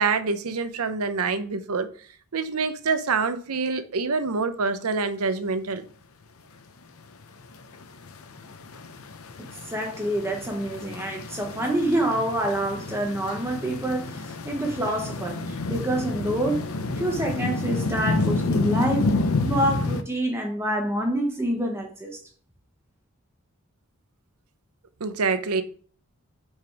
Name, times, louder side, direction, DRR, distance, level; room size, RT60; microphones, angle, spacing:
voice 1, 0.0-1.9 2.3-5.8 25.0-25.6, right 4 dB, 80° right, 0.7 m, -26 dB
sound 1, 7.2-20.0, left 3 dB, 75° left, 0.7 m, -29 dB
voice 2, 9.4-16.6 17.0-19.1 19.4-22.2, right 1 dB, 10° right, 0.9 m, -27 dB
5.4 x 5.2 x 4.6 m
head